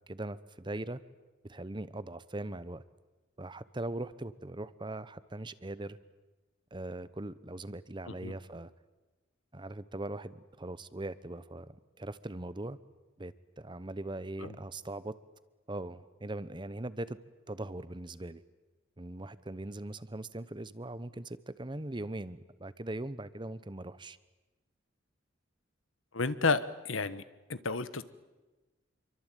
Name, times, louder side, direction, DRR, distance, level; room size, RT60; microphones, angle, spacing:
voice 1, 0.1-1.0 1.4-2.8 3.4-6.0 6.7-8.7 9.5-12.8 13.2-15.1 15.7-17.2 17.5-18.4 19.0-24.2, right 1 dB, 25° right, 16 dB, 0.9 m, -40 dB
voice 2, 26.1-27.2 27.5-28.0, left 4 dB, 85° left, 14 dB, 1.3 m, -31 dB
27.0 x 24.0 x 9.2 m, 1.1 s
head